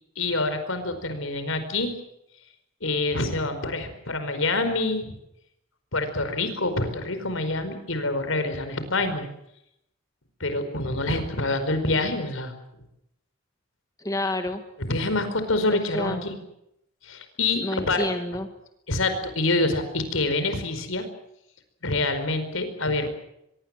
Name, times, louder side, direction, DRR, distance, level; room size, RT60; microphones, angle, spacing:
voice 1, 0.2-1.9 2.8-5.1 5.9-9.3 10.4-12.5 14.8-16.4 17.0-18.1 18.9-21.1 21.8-23.2, left 2 dB, 85° left, 9 dB, 4.9 m, -26 dB
voice 2, 14.0-14.6 15.7-16.2 17.6-18.5, left 1 dB, 15° left, 6 dB, 1.8 m, -29 dB
24.5 x 22.5 x 7.7 m, 0.81 s
head